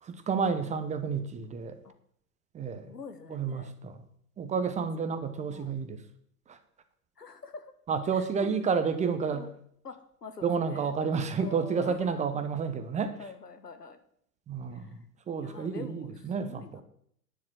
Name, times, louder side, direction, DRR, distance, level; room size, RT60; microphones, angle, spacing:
voice 1, 0.0-1.8 2.5-2.9 3.3-4.0 4.4-6.0 6.5-6.6 7.9-9.5 10.4-13.2 14.5-15.0 15.3-16.8, right 5 dB, 15° right, 10 dB, 0.8 m, -30 dB
voice 2, 2.9-3.7 5.0-5.1 5.5-5.7 7.2-7.7 8.1-8.5 9.3-9.5 9.8-10.9 11.4-12.1 13.2-14.0 14.7-15.0 15.3-16.8, left 4 dB, 80° left, 9 dB, 1.4 m, -46 dB
10.5 x 7.4 x 7.6 m, 0.68 s
figure-of-eight pair, 95°, 47 cm